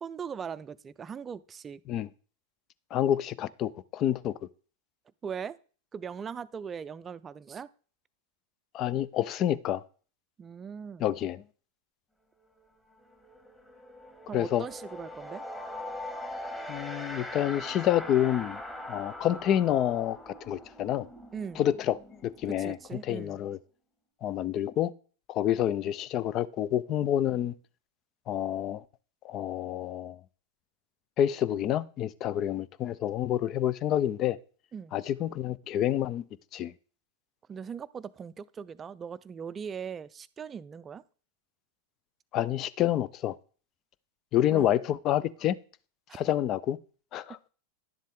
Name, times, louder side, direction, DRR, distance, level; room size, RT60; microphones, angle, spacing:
voice 1, 0.0-1.8 5.2-5.6 5.9-7.7 10.4-11.0 14.3-15.4 21.3-21.7 22.5-23.4 34.7-34.9 37.5-41.0 44.5-44.7 46.1-46.2, right 7 dB, 25° right, 0.4 m, -40 dB
voice 2, 2.9-4.4 8.7-9.8 11.0-11.4 14.3-14.6 16.7-18.6 18.9-21.1 21.6-22.0 22.2-22.8 23.1-23.6 24.2-24.9 25.3-27.5 28.3-28.8 29.2-30.2 31.2-34.4 34.9-36.2 36.5-36.7 42.3-43.4 44.3-45.6 46.1-46.8 47.1-47.4, left 11 dB, 40° left, 0.5 m, -28 dB
sound 1, 12.4-12.6 12.9-23.5, left 1 dB, 10° left, 1.8 m, -42 dB
11.0 x 7.3 x 3.6 m
hypercardioid pair, 100°, 0 cm